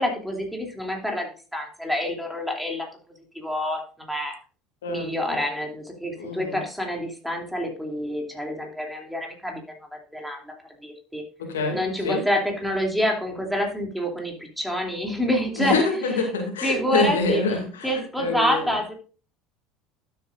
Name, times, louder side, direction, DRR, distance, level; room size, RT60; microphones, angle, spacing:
voice 1, 0.0-2.9 3.3-4.4 4.9-11.2 11.7-15.8 16.6-17.4 17.8-18.9, equal, ahead, 1 dB, 2.7 m, -27 dB
voice 2, 4.8-5.4 6.2-6.6 11.4-11.8 12.0-12.2 15.6-17.9 18.2-18.7, left 3 dB, 80° left, 3 dB, 2.3 m, -26 dB
12.0 x 7.6 x 2.5 m, 0.36 s
hypercardioid pair, 70°, 0 cm